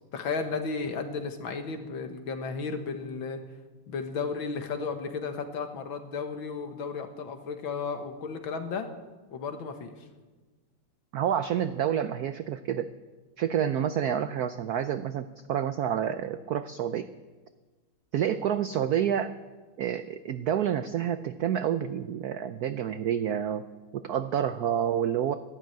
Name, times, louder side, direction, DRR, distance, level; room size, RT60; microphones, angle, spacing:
voice 1, 0.1-3.4 3.9-8.9 9.3-9.9, left 5 dB, 65° left, 6 dB, 2.2 m, -34 dB
voice 2, 11.1-12.9 13.4-17.1 18.1-19.3 19.8-23.6 23.9-25.3, right 9 dB, 85° right, 11 dB, 0.8 m, -28 dB
13.0 x 12.0 x 9.3 m, 1.3 s
omnidirectional pair, 2.4 m